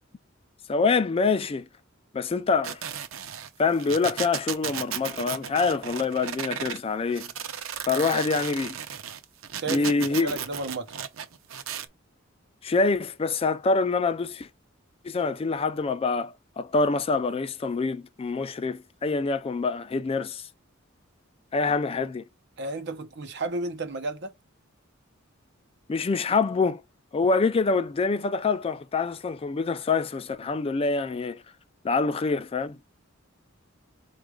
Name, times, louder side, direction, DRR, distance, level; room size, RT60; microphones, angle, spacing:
voice 1, 0.7-1.6 2.1-2.8 3.6-7.3 7.9-8.8 9.7-10.3 12.6-14.5 15.0-20.4 21.5-22.2 25.9-26.8 27.1-31.4 31.8-32.8, left 4 dB, 30° left, 0.4 m, -25 dB
sound 1, 2.6-6.8 7.1-11.8, right 8 dB, 90° right, 0.6 m, -35 dB
voice 2, 9.5-10.9 22.6-24.3, right 2 dB, 60° right, 0.9 m, -33 dB
4.5 x 2.4 x 4.8 m
head